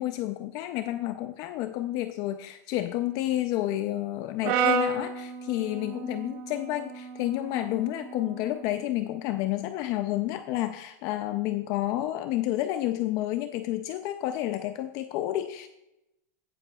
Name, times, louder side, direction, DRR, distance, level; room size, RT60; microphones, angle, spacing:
voice 1, 0.0-15.7, left 14 dB, 35° left, 10 dB, 0.5 m, -30 dB
Brass instrument, 4.4-8.7, right 5 dB, 45° right, 1.9 m, -31 dB
16.5 x 7.6 x 2.3 m, 0.89 s
supercardioid pair, 155°, 10 cm